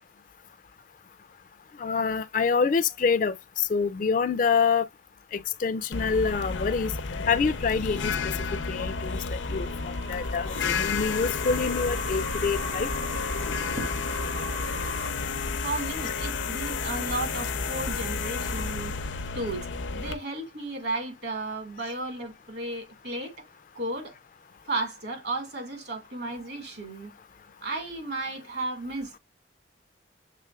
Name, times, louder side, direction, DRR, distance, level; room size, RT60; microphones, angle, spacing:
voice 1, 1.8-4.9 5.3-6.9 7.3-8.4 8.7-12.9, left 5 dB, 45° left, 0.3 m, -26 dB
sound 1, 5.9-20.1, left 4 dB, 80° left, 0.6 m, -31 dB
sound 2, 7.0-15.1, right 1 dB, 85° right, 1.5 m, -41 dB
voice 2, 15.6-19.7 19.9-23.5 23.8-24.2 24.7-27.1 27.6-29.2, right 2 dB, 60° right, 1.9 m, -34 dB
6.7 x 3.3 x 2.3 m
head